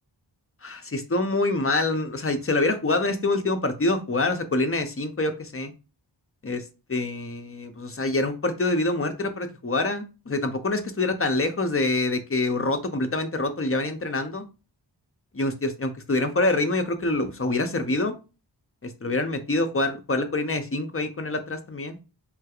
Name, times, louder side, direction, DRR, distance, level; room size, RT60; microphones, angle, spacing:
voice 1, 0.6-5.7 6.4-6.6 6.9-14.4 15.3-18.1 18.8-22.0, left 2 dB, 30° left, 8 dB, 0.5 m, -26 dB
3.2 x 3.2 x 2.3 m, 0.31 s
wide cardioid pair, 45°, 45 cm